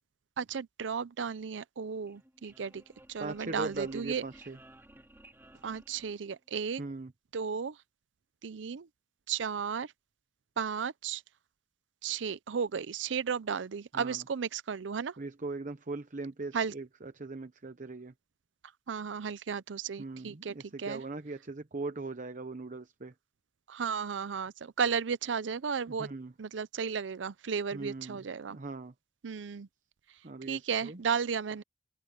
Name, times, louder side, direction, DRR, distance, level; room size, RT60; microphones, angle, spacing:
voice 1, 0.4-2.8 3.1-4.2 5.6-6.8 7.3-7.8 8.4-8.9 9.3-9.9 10.6-11.2 12.0-15.2 16.5-16.7 18.9-21.0 23.7-26.1 26.4-28.6 29.2-29.7 30.5-31.6, right 6 dB, 90° right, 0.5 m, -34 dB
sound 1, 1.9-6.6, right 1 dB, 15° right, 4.8 m, -57 dB
voice 2, 3.2-4.6 6.8-7.1 13.9-14.2 15.2-18.1 20.0-23.1 26.0-26.3 27.7-28.2 28.5-28.9 30.2-31.0, right 3 dB, 45° right, 0.9 m, -40 dB
head